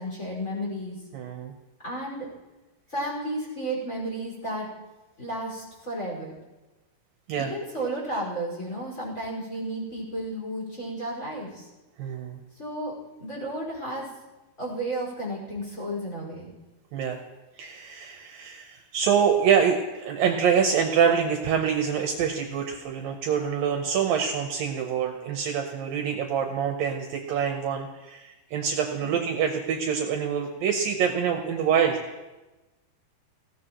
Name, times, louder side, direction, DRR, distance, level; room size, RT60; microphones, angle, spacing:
voice 1, 0.0-1.0 1.8-2.3 2.9-4.7 5.2-6.3 7.3-11.7 12.5-14.1 14.6-16.5 29.0-29.3, right 1 dB, 20° left, -3 dB, 5.3 m, -33 dB
voice 2, 1.1-1.5 7.3-7.5 12.0-12.4 16.9-17.2 17.6-32.0, right 7 dB, 70° right, 3 dB, 2.4 m, -25 dB
19.0 x 16.5 x 3.1 m, 1.1 s
omnidirectional pair, 4.6 m